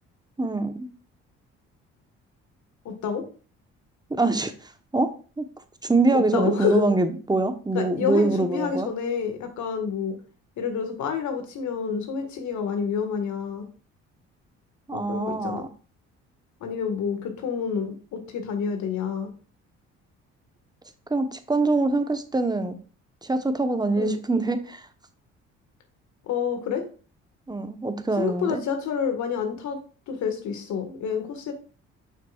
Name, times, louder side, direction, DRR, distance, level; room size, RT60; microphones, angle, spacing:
voice 1, 0.4-0.9 4.2-4.5 4.9-5.1 5.4-5.5 5.8-8.9 14.9-15.7 21.1-22.7 23.2-24.8 27.5-28.6, right 2 dB, 15° right, 8 dB, 1.0 m, -24 dB
voice 2, 2.8-3.2 6.1-6.8 7.7-10.1 10.6-13.6 14.9-15.6 16.6-19.3 24.0-24.2 26.2-26.8 28.2-29.8 30.1-31.5, left 6 dB, 70° left, 6 dB, 1.7 m, -28 dB
7.2 x 5.8 x 2.4 m, 0.38 s
supercardioid pair, 65°, 30 cm